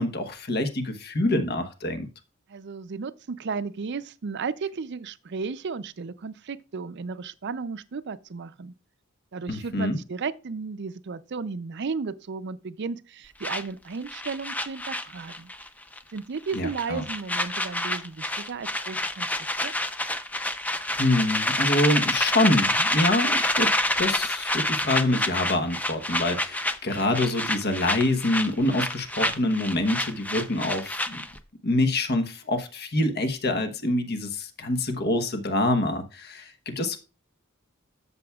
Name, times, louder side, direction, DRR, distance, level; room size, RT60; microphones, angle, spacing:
voice 1, 0.0-2.1 9.5-10.0 16.5-17.0 20.9-23.7 24.0-31.2 31.6-37.0, left 1 dB, 50° left, 1.1 m, -26 dB
voice 2, 2.5-8.7 9.3-15.5 16.1-19.3 19.6-19.7, right 5 dB, 55° right, 0.5 m, -34 dB
sound 1, 13.4-15.7 15.9-16.2 16.5-31.4, left 1 dB, 10° left, 0.5 m, -28 dB
12.5 x 7.0 x 2.3 m
head